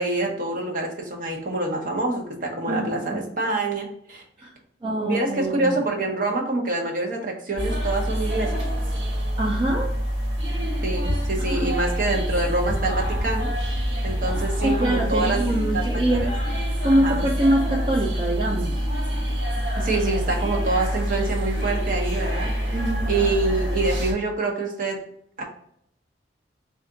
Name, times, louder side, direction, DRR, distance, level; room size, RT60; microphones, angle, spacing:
voice 1, 0.0-4.2 4.8-8.6 10.8-13.5 13.8-15.5 15.7-16.3 16.9-17.3 19.8-22.8 23.1-25.0 25.4-25.5, right 2 dB, 50° right, 0 dB, 0.8 m, -26 dB
voice 2, 2.7-3.3 4.4-4.5 4.8-5.7 9.4-10.0 11.5-11.8 14.6-16.3 16.8-18.7 21.2-21.3 22.7-23.2, right 1 dB, 25° right, -1 dB, 0.4 m, -24 dB
sound 1, 7.6-24.1, equal, 90° right, 0.9 m, -26 dB
3.4 x 2.5 x 3.8 m, 0.68 s
head